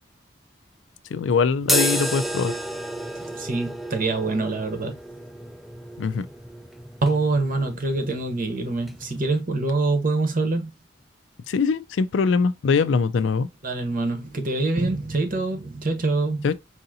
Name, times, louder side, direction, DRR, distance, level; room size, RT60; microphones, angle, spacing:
voice 1, 1.1-2.5 6.0-6.3 11.5-13.5 16.4-16.5, left 5 dB, 75° left, 0.4 m, -22 dB
sound 1, 1.6-9.4, equal, ahead, 0.3 m, -31 dB
voice 2, 3.2-5.0 7.0-10.7 13.6-16.5, right 3 dB, 50° right, 1.0 m, -25 dB
4.7 x 2.7 x 2.6 m
head